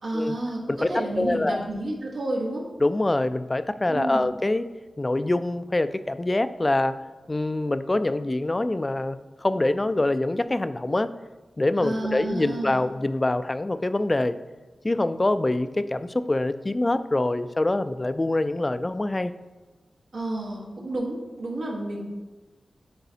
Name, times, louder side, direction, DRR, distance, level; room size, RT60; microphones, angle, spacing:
voice 1, 0.0-0.6 0.9-2.6 3.9-4.3 11.8-12.8 20.1-22.1, right 1 dB, 85° right, -5 dB, 1.3 m, -30 dB
voice 2, 1.2-1.7 2.8-4.7 5.0-6.9 7.3-11.1 11.6-14.4 14.8-19.3, left 2 dB, 30° left, 12 dB, 0.3 m, -25 dB
9.5 x 4.0 x 2.8 m, 1.2 s
cardioid pair, 60°, 0 cm